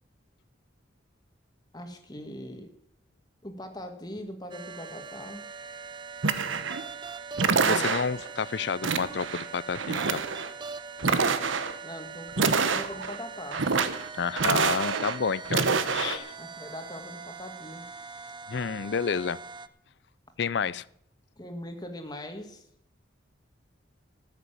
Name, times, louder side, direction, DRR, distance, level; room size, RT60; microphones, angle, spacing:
voice 1, 1.7-2.7 3.4-5.5 11.8-13.6 16.4-17.9 21.4-22.6, left 1 dB, 20° left, 5 dB, 1.7 m, -41 dB
sound 1, 4.5-19.7, right 5 dB, 25° right, 0.6 m, -42 dB
sound 2, 6.2-6.9 7.4-8.3 8.8-9.5 9.7-10.5 11.0-11.8 12.3-13.2 13.5-14.1 14.4-15.2 15.5-16.2, right 5 dB, 80° right, 1.0 m, -26 dB
voice 2, 7.6-10.2 14.2-16.4 18.5-19.4 20.4-20.8, left 6 dB, 60° left, 20 dB, 0.5 m, -30 dB
14.0 x 6.8 x 8.8 m, 0.72 s
head